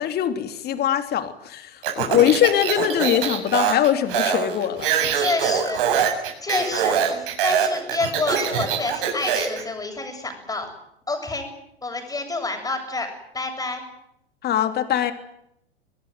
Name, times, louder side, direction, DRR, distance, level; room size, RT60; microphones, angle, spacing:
voice 1, 0.0-1.7 2.0-4.9 14.4-15.1, left 10 dB, 30° left, 8 dB, 3.2 m, -22 dB
Speech, 1.8-9.6, right 8 dB, 55° right, 7.2 m, -23 dB
voice 2, 5.1-10.7 11.1-11.5 11.8-13.8, left 3 dB, 10° left, 4 dB, 7.9 m, -29 dB
26.0 x 19.5 x 9.5 m, 0.77 s
figure-of-eight pair, 100°, 32 cm